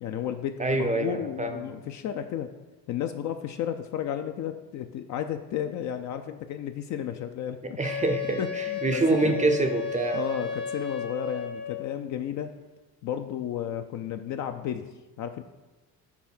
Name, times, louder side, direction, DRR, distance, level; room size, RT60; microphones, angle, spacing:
voice 1, 0.0-2.5 2.9-7.8 8.4-9.3 10.1-12.6 13.0-14.9 15.2-15.4, left 10 dB, 40° left, 7 dB, 0.4 m, -33 dB
voice 2, 0.6-1.8 7.6-10.2, right 3 dB, 15° right, 7 dB, 0.6 m, -26 dB
Wind instrument woodwind instrument, 7.8-12.0, left 6 dB, 55° left, 1.3 m, -33 dB
5.9 x 3.8 x 6.0 m, 1.1 s
hypercardioid pair, 60°, 49 cm